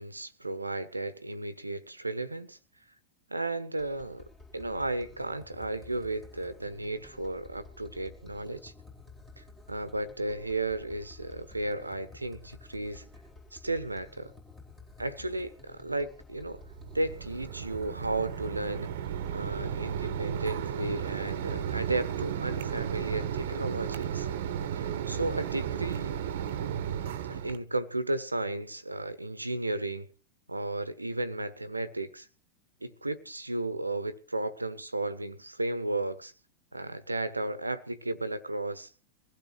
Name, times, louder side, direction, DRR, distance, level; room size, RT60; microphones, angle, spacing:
voice 1, 0.0-2.6 3.3-4.3 4.5-8.7 9.4-13.1 13.5-14.3 15.0-16.6 16.9-18.9 19.3-24.3 24.7-26.2 27.3-30.1 30.5-32.3 32.8-36.3 36.7-38.9, right 2 dB, 85° right, 1.1 m, -34 dB
sound 1, 3.8-22.3, left 3 dB, 20° left, 4.9 m, -52 dB
Mechanisms, 16.6-27.6, right 9 dB, 55° right, 1.1 m, -34 dB
23.0 x 16.0 x 3.2 m
figure-of-eight pair, 90°, 0 cm